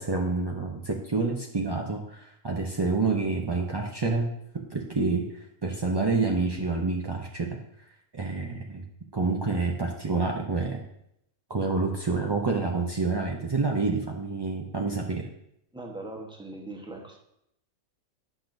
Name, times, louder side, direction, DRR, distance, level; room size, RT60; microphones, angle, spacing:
voice 1, 0.0-7.6 8.1-8.8 9.1-10.8 11.5-15.3, right 3 dB, 40° right, 0 dB, 0.3 m, -28 dB
voice 2, 15.7-17.2, right 2 dB, 5° right, 0 dB, 0.9 m, -40 dB
10.0 x 5.9 x 2.6 m, 0.77 s
omnidirectional pair, 1.4 m